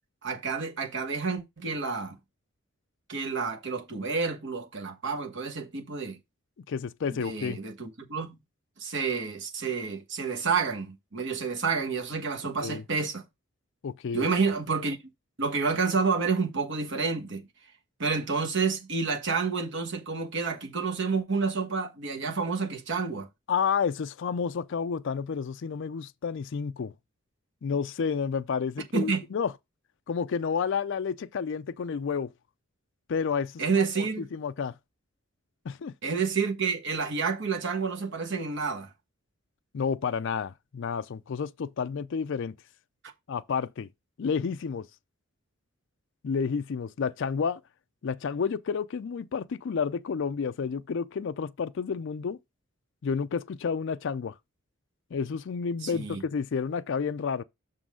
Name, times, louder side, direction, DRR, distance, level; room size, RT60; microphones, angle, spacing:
voice 1, 0.2-2.2 3.1-6.2 7.1-8.4 8.8-13.2 14.1-15.0 15.4-17.5 18.0-23.3 28.9-29.2 33.6-34.3 36.0-38.9 55.8-56.2, right 5 dB, 60° right, 1.2 m, -29 dB
voice 2, 6.7-7.6 12.6-12.8 13.8-14.3 23.5-26.9 27.6-29.5 30.1-32.3 33.1-33.6 34.0-34.1 34.3-34.7 35.7-35.9 39.7-42.5 43.3-43.9 44.2-44.9 46.2-47.6 48.0-52.4 53.0-54.3 55.1-57.4, left 6 dB, 60° left, 0.4 m, -30 dB
6.2 x 3.8 x 6.2 m
head